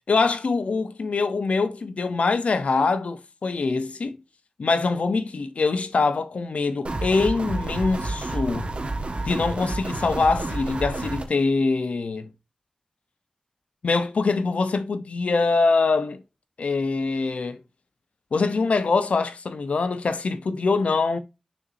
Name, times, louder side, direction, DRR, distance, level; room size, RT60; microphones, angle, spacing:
voice 1, 0.1-4.2 4.6-8.7 9.2-12.3 13.8-16.2 16.6-17.6 18.3-21.2, left 4 dB, 90° left, 0.8 m, -24 dB
sound 1, 6.8-11.2, right 2 dB, 60° right, 1.5 m, -30 dB
6.7 x 6.0 x 2.6 m
wide cardioid pair, 50°, 2 cm